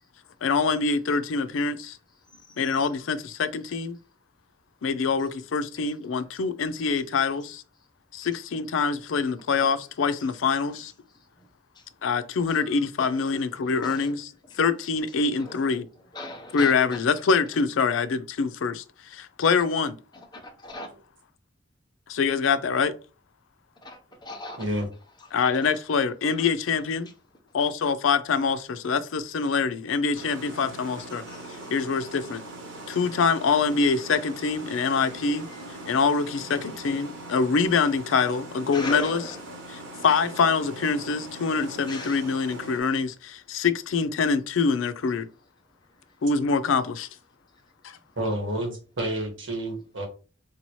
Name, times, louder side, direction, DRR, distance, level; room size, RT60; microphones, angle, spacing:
voice 1, 0.4-2.0 2.6-4.0 4.8-7.6 8.1-10.9 12.0-14.3 14.6-15.9 16.5-20.0 22.1-22.9 25.3-27.1 27.5-31.2 31.7-32.4 32.9-35.5 35.9-39.2 40.0-45.3 46.2-47.1 47.8-48.0, left 5 dB, 90° left, 0.4 m, -25 dB
voice 2, 2.3-2.9 5.8-5.9 11.7-11.8 12.5-12.7 13.0-13.2 13.8-14.1 14.5-14.6 15.4-15.7 16.1-17.0 20.1-20.9 23.8-24.7 25.6-25.7 26.4-26.5 31.3-31.7 34.2-34.3 34.8-35.6 38.7-39.4 41.9-42.3, left 1 dB, 20° left, 0.8 m, -40 dB
voice 3, 24.5-24.9 48.2-50.1, right 1 dB, 70° right, 1.4 m, -29 dB
sound 1, 30.1-42.8, right 2 dB, 90° right, 1.1 m, -41 dB
3.9 x 2.7 x 3.1 m
head